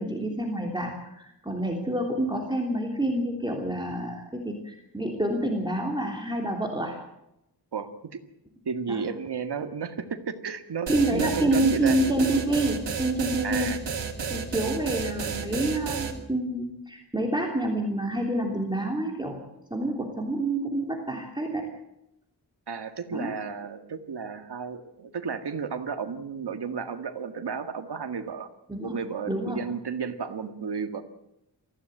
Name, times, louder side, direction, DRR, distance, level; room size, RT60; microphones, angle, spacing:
voice 1, 0.0-6.9 8.9-9.0 10.9-13.7 14.3-19.4 19.7-21.7 23.1-23.3 28.7-29.0 29.3-29.6, right 1 dB, 10° right, 0 dB, 3.2 m, -28 dB
voice 2, 7.7-8.2 8.7-12.0 13.4-13.8 22.7-28.5 28.8-31.0, right 6 dB, 70° right, 7 dB, 1.9 m, -33 dB
sound 1, 10.9-16.1, right 6 dB, 85° right, 2.8 m, -31 dB
24.0 x 15.5 x 7.9 m, 0.84 s
wide cardioid pair, 120°, 42 cm